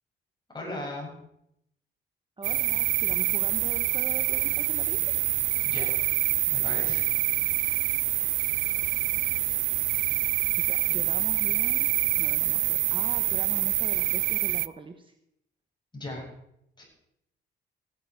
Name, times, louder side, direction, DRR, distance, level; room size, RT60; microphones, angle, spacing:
voice 1, 0.5-1.1 5.6-6.0 6.5-7.0 15.9-16.3 16.8-16.9, left 1 dB, 20° left, -2 dB, 6.8 m, -37 dB
voice 2, 2.4-5.0 10.6-11.9 12.2-15.1, right 4 dB, 25° right, 6 dB, 1.2 m, -41 dB
sound 1, 2.4-14.7, right 15 dB, 75° right, 0.4 m, -26 dB
16.0 x 9.9 x 4.8 m, 0.78 s
cardioid pair, 90°, 20 cm